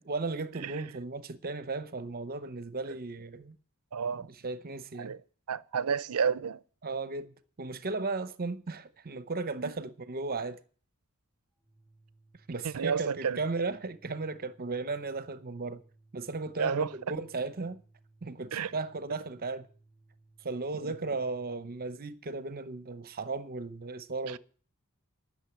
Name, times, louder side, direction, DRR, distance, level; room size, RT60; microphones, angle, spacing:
voice 1, 0.0-3.6 4.1-5.1 6.8-10.6 12.5-15.8 16.1-17.8 18.2-19.7 20.4-24.4, right 3 dB, 45° right, 0.8 m, -36 dB
voice 2, 3.9-4.3 5.0-5.2 5.5-6.6 12.7-13.4 16.6-16.9 18.5-18.7 20.8-20.9, right 6 dB, 75° right, 0.6 m, -30 dB
Organ, 11.6-21.9, right 2 dB, 5° left, 3.0 m, -63 dB
11.5 x 6.5 x 9.1 m
head